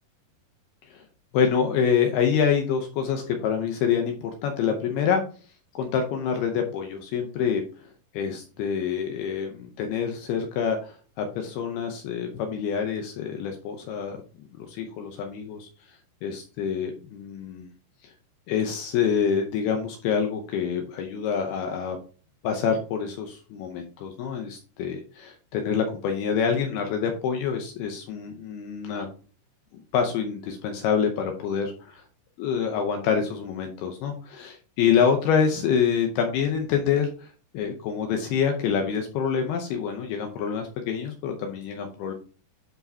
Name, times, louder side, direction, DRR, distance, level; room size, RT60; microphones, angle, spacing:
voice 1, 1.3-5.2 5.7-7.6 8.1-14.2 14.5-17.7 18.0-18.1 18.5-22.0 22.4-29.1 29.9-31.7 32.4-42.1, left 7 dB, 85° left, 4 dB, 2.2 m, -26 dB
11.0 x 4.9 x 2.8 m, 0.39 s
omnidirectional pair, 5.6 m